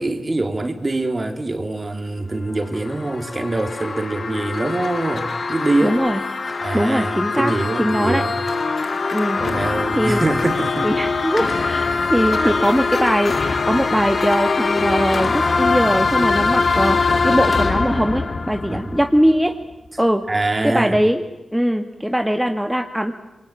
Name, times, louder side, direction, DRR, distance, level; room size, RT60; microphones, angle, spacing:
voice 1, 0.0-6.0 6.6-8.4 9.4-10.9 12.4-12.6 18.7-18.9 20.3-21.0, right 2 dB, 35° right, 6 dB, 3.4 m, -24 dB
sound 1, 2.5-19.5, left 4 dB, 55° left, 2.2 m, -22 dB
voice 2, 5.8-6.2 6.7-7.5 7.8-8.2 9.1-9.4 10.0-10.3 10.8-11.8 12.1-19.5 20.0-20.2 20.6-21.2 21.5-23.1, equal, 5° right, 5 dB, 1.8 m, -20 dB
26.5 x 22.5 x 8.8 m, 0.95 s
cardioid pair, 60°, 0 cm